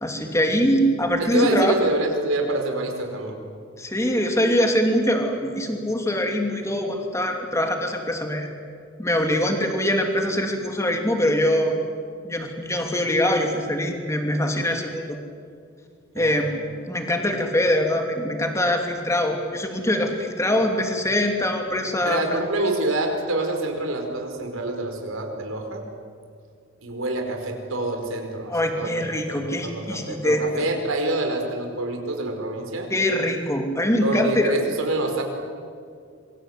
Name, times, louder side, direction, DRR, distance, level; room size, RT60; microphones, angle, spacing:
voice 1, 0.0-1.7 3.8-8.5 9.0-11.8 12.3-15.2 16.1-22.4 28.5-30.7 32.9-34.5, left 1 dB, 15° left, 3 dB, 2.9 m, -23 dB
voice 2, 1.2-3.4 16.2-16.5 22.0-25.8 26.8-32.9 34.0-35.2, right 2 dB, 80° right, 3 dB, 4.9 m, -27 dB
27.0 x 24.0 x 8.2 m, 2.3 s
head